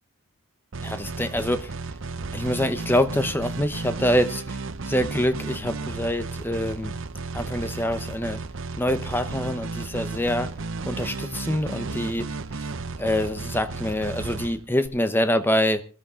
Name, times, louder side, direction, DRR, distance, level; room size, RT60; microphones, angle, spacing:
sound 1, 0.7-14.9, right 3 dB, 55° right, 0.8 m, -34 dB
voice 1, 0.8-1.7 2.3-4.6 4.8-6.9 7.3-8.4 8.8-10.5 10.8-12.7 13.0-15.9, left 1 dB, 10° left, 0.9 m, -25 dB
19.5 x 12.5 x 3.8 m
head